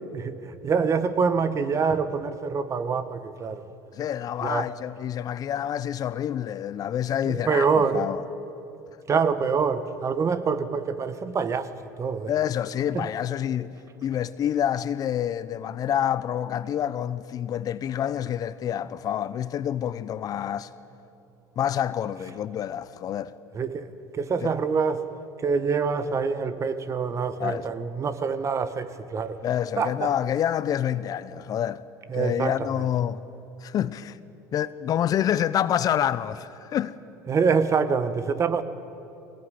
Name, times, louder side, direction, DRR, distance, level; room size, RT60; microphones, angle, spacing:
voice 1, 0.1-3.6 4.4-4.7 7.2-8.1 9.1-11.7 12.0-12.3 12.9-13.1 23.5-25.1 25.4-29.4 29.8-30.1 32.1-32.9 37.3-38.6, right 5 dB, 35° right, 1.4 m, -25 dB
voice 2, 3.9-7.7 7.9-8.2 12.3-20.7 21.6-23.3 24.4-24.5 27.4-27.7 29.4-31.8 32.1-33.2 33.6-34.2 34.5-37.0, left 10 dB, 45° left, 0.7 m, -27 dB
22.0 x 19.0 x 9.6 m
hypercardioid pair, 85°, 9 cm